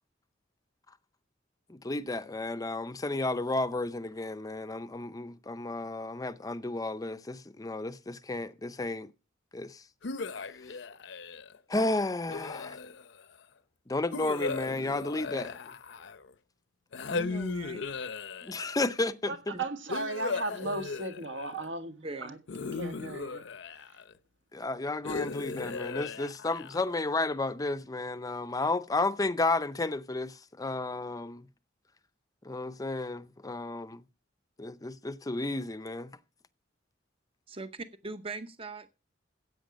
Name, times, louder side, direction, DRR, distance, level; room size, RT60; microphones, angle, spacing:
voice 1, 1.7-9.1 9.5-9.8 11.7-12.8 13.9-15.5 18.4-19.5 24.5-31.5 32.4-34.0 34.6-36.1, left 2 dB, 20° left, 0.5 m, -32 dB
sound 1, 10.0-11.6 12.3-13.2 14.1-16.3 16.9-18.8 19.9-21.7 22.5-24.1 25.0-27.0, left 4 dB, 65° left, 0.7 m, -37 dB
voice 2, 17.1-17.9 19.5-19.6 22.0-22.4 37.5-38.9, right 3 dB, 30° right, 0.8 m, -40 dB
voice 3, 19.3-22.4 22.7-24.0, right 2 dB, 70° right, 1.8 m, -36 dB
15.5 x 8.3 x 5.1 m
head